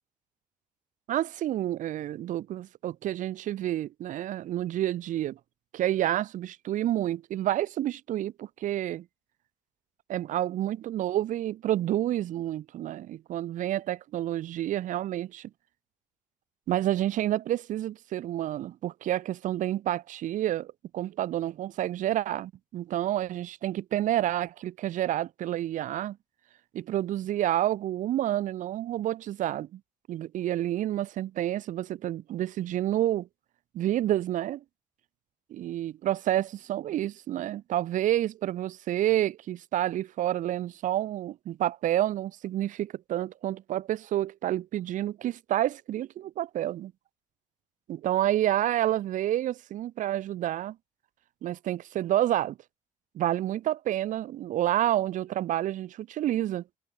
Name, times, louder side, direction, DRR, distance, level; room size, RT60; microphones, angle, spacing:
voice 1, 1.1-5.4 5.7-9.1 10.1-15.5 16.7-26.2 26.7-29.8 30.1-33.3 33.7-34.6 35.5-46.9 47.9-50.8 51.4-52.6 53.1-56.6, right 13 dB, 65° right, 0.9 m, -29 dB
cardioid pair, 105°, 14 cm